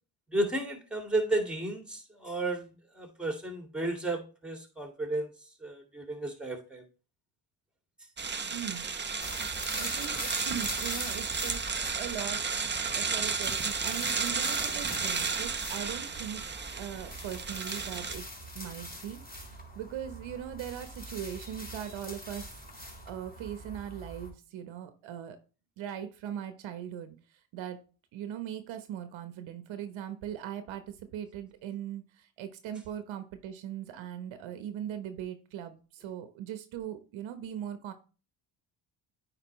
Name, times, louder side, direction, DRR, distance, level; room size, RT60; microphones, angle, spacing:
voice 1, 0.3-5.3 5.6-6.8, right 2 dB, ahead, 4 dB, 2.2 m, -33 dB
sound 1, 8.2-18.2, right 5 dB, 25° right, 0.8 m, -33 dB
voice 2, 8.4-8.9 9.8-10.2 10.5-12.4 12.9-16.4 16.8-18.3 18.5-19.2 19.7-25.4 25.8-27.2 27.5-27.8 28.1-37.9, right 10 dB, 80° right, 10 dB, 1.1 m, -40 dB
sound 2, 9.2-24.3, equal, 20° left, 4.3 m, -43 dB
9.1 x 4.7 x 3.1 m, 0.35 s
cardioid pair, 80°, 46 cm